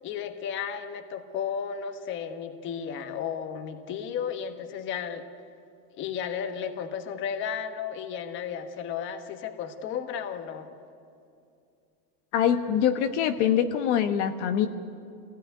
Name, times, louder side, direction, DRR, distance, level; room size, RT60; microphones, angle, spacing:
voice 1, 0.0-5.2 6.0-10.7, left 7 dB, 25° left, 8 dB, 1.2 m, -34 dB
voice 2, 12.3-14.7, left 9 dB, 45° left, 7 dB, 1.2 m, -24 dB
26.0 x 18.0 x 9.4 m, 2.4 s
supercardioid pair, 165°, 49 cm